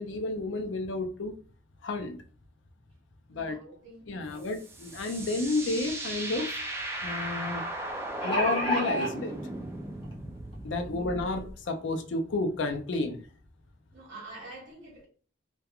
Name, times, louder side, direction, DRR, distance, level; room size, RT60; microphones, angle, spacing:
voice 1, 0.0-1.3 1.8-2.2 3.3-3.6 4.1-6.5 7.0-7.6 8.2-9.3 10.6-13.2, left 2 dB, 70° left, 0.4 m, -31 dB
voice 2, 3.3-4.5 10.9-11.1 13.9-15.1, right 2 dB, 60° right, 1.2 m, -47 dB
sound 1, 4.4-11.5, right 1 dB, 15° right, 0.3 m, -37 dB
sound 2, 5.8-5.9 6.2-6.3 7.9-9.1 10.0-10.1 10.5-10.6, equal, 25° left, 0.7 m, -29 dB
2.8 x 2.2 x 2.3 m
head